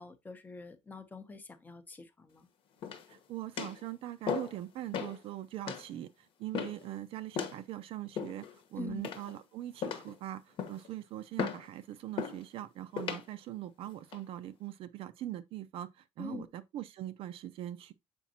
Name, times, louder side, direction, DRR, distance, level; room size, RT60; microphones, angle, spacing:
voice 1, 0.0-2.5 8.8-9.0 16.2-16.5, left 3 dB, 15° left, 0.6 m, -45 dB
sound 1, 2.8-3.2 3.6-3.8 4.3-4.6 4.9-5.2 5.7-5.9 6.5-6.9 7.3-7.6 8.2-8.6 9.0-9.4 9.8-10.2 10.6-10.9 11.4-11.7 12.2-12.4 13.0-13.2 13.9-14.2, left 7 dB, 50° left, 1.0 m, -36 dB
voice 2, 3.1-17.9, right 13 dB, 55° right, 0.4 m, -42 dB
7.2 x 5.0 x 2.8 m
cardioid pair, 180°, 12 cm